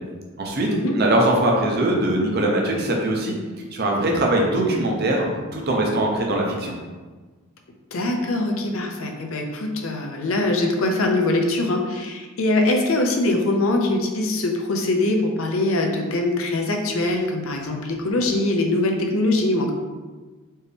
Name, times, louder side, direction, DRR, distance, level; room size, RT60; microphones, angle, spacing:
voice 1, 0.4-0.7 1.0-3.3 3.7-5.3 5.5-6.7, right 1 dB, 50° right, -1 dB, 0.7 m, -21 dB
voice 2, 7.9-19.7, left 2 dB, 70° left, 2 dB, 0.6 m, -22 dB
4.5 x 3.0 x 3.3 m, 1.3 s
head